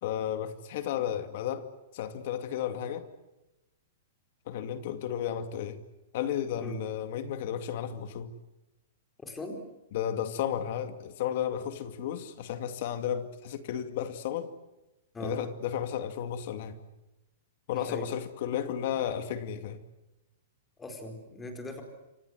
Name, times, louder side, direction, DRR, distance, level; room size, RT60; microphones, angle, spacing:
voice 1, 0.0-1.7 1.9-3.1 4.5-5.8 6.1-8.3 9.9-14.5 15.2-16.8 17.7-19.8, left 9 dB, 45° left, 2.4 m, -33 dB
voice 2, 9.2-9.6 15.1-15.4 17.7-18.1 20.8-21.8, left 2 dB, 10° left, 4.5 m, -39 dB
28.5 x 25.5 x 7.9 m
supercardioid pair, 170°, 0 cm